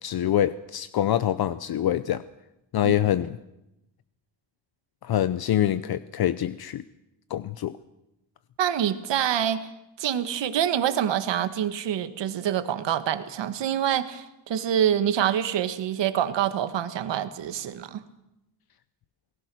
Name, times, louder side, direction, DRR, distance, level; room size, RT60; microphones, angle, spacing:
voice 1, 0.0-2.2 2.7-3.4 5.0-6.8 7.3-7.8, left 11 dB, 55° left, 14 dB, 0.7 m, -25 dB
voice 2, 8.6-9.7 10.0-18.0, right 10 dB, 75° right, 10 dB, 1.7 m, -26 dB
28.0 x 18.5 x 6.3 m, 0.90 s
wide cardioid pair, 150°, 44 cm